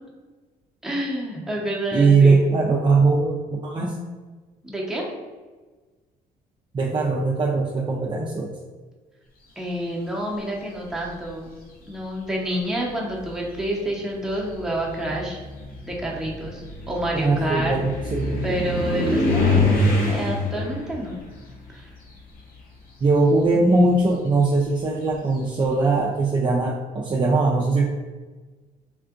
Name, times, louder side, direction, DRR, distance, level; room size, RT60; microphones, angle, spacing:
voice 1, 0.8-2.4 4.6-5.0 9.6-11.6 11.9-15.4 15.8-17.8 18.4-19.8 20.1-21.2 21.7-21.9, right 1 dB, 5° right, -3 dB, 0.8 m, -28 dB
voice 2, 1.9-4.0 6.7-8.5 17.1-18.4 23.0-27.9, right 3 dB, 30° right, -3 dB, 0.4 m, -20 dB
sound 1, 10.7-11.3 12.3-12.4 12.9-22.8 23.1-25.8, left 2 dB, 65° left, 0.8 m, -27 dB
3.6 x 2.4 x 2.4 m, 1.3 s
cardioid pair, 95°, 16 cm